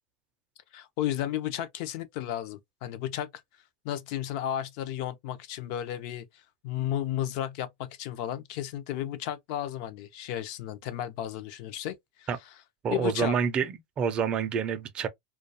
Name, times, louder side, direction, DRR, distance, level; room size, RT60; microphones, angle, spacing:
voice 1, 0.7-3.3 3.8-12.3 12.9-13.4, left 11 dB, 55° left, 0.5 m, -33 dB
voice 2, 12.8-15.1, right 6 dB, 25° right, 0.4 m, -28 dB
2.2 x 2.2 x 2.6 m
supercardioid pair, 140°, 4 cm